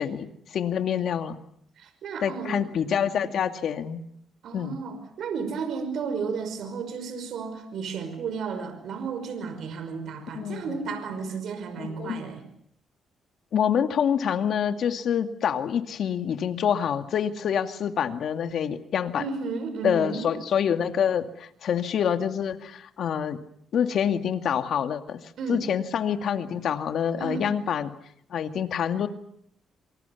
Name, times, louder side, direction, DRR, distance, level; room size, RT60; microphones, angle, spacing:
voice 1, 0.0-1.4 2.2-4.0 4.5-4.8 10.3-10.8 11.8-12.2 13.5-19.2 19.8-23.4 23.7-27.9 28.3-29.1, left 8 dB, 65° left, 7 dB, 2.3 m, -26 dB
voice 2, 1.8-2.8 4.4-12.4 19.2-20.3 25.4-25.6 27.2-27.5, right 5 dB, 70° right, 8 dB, 5.4 m, -33 dB
27.0 x 25.0 x 7.2 m, 0.71 s
cardioid pair, 90°, 0 cm